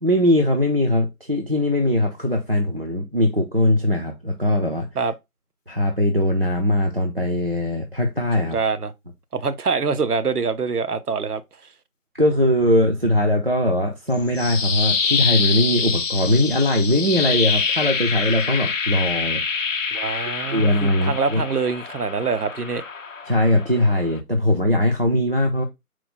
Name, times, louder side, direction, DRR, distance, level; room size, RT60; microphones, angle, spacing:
voice 1, 0.0-4.9 5.7-8.6 12.2-19.4 20.5-21.4 23.3-25.6, left 1 dB, 40° right, 0.5 m, -20 dB
voice 2, 8.4-8.9 9.3-11.4 19.9-20.7 21.0-22.8, right 5 dB, 80° right, 0.7 m, -24 dB
sound 1, 14.1-24.2, left 5 dB, 60° left, 0.5 m, -26 dB
4.4 x 2.1 x 4.1 m
figure-of-eight pair, 160°, 45 cm